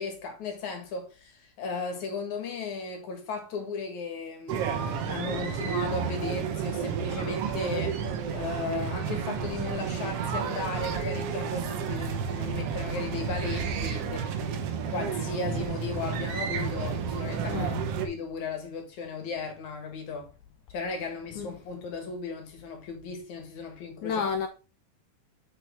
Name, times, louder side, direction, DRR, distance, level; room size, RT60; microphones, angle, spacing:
voice 1, 0.0-8.0 8.3-14.3 14.9-17.7 18.0-20.3 20.7-24.3, left 4 dB, 60° left, 2.8 m, -36 dB
sound 1, 4.5-18.1, right 6 dB, 85° right, 1.3 m, -31 dB
voice 2, 17.5-17.9 21.4-21.5 24.0-24.5, left 6 dB, 75° left, 1.8 m, -31 dB
8.8 x 5.7 x 3.4 m
omnidirectional pair, 4.2 m